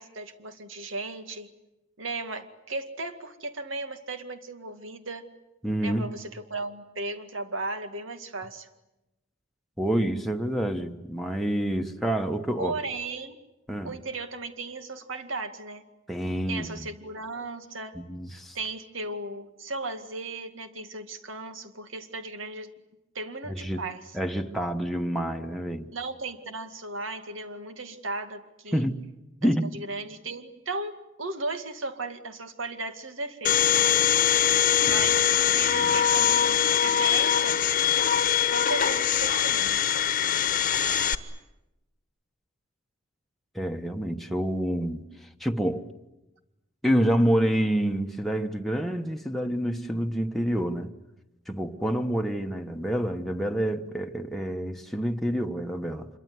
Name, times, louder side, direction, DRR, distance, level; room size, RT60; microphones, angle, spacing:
voice 1, 0.0-1.5 2.0-5.3 5.8-8.7 12.6-13.4 13.8-15.8 16.5-18.0 18.5-22.7 23.1-24.0 25.9-28.9 29.4-33.9 34.8-37.6 38.5-39.8, right 3 dB, 80° right, 2.2 m, -36 dB
voice 2, 5.6-6.1 9.8-12.7 13.7-13.9 16.1-16.9 17.9-18.6 23.5-23.8 24.1-25.9 28.7-29.0 29.4-29.7 34.9-35.0 35.8-35.9 43.5-45.9 46.8-50.9 51.5-56.1, equal, ahead, 1.1 m, -28 dB
Domestic sounds home sounds, 33.4-41.1, left 9 dB, 45° left, 1.2 m, -22 dB
26.5 x 23.0 x 9.5 m
head